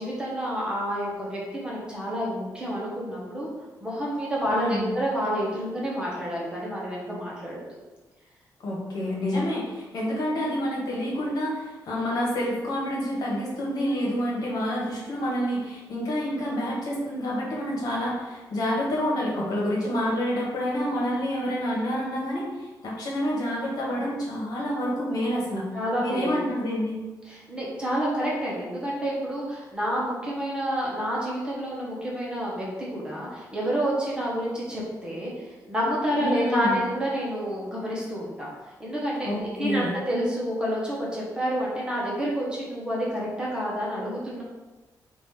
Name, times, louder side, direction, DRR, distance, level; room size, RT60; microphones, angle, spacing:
voice 1, 0.0-3.5 3.8-7.6 9.3-9.4 25.7-26.4 27.3-38.5 38.8-44.4, equal, 15° right, -5 dB, 1.0 m, -29 dB
voice 2, 4.5-4.9 8.6-25.7 26.0-27.0 36.2-36.7 39.2-39.9, equal, 65° left, -4 dB, 1.3 m, -28 dB
5.0 x 2.6 x 3.6 m, 1.2 s
wide cardioid pair, 160°, 7 cm